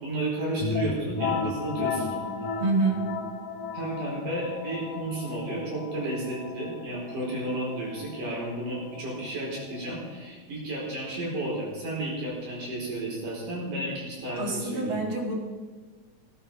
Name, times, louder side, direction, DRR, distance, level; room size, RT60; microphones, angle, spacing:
voice 1, 0.0-2.2 3.7-15.0, right 1 dB, 75° right, -4 dB, 6.2 m, -32 dB
sound 1, 0.6-10.2, left 5 dB, 75° left, 2.8 m, -34 dB
voice 2, 2.6-3.1 14.4-15.4, right 3 dB, 45° right, 1 dB, 2.6 m, -26 dB
18.0 x 11.5 x 5.0 m, 1.4 s
omnidirectional pair, 3.6 m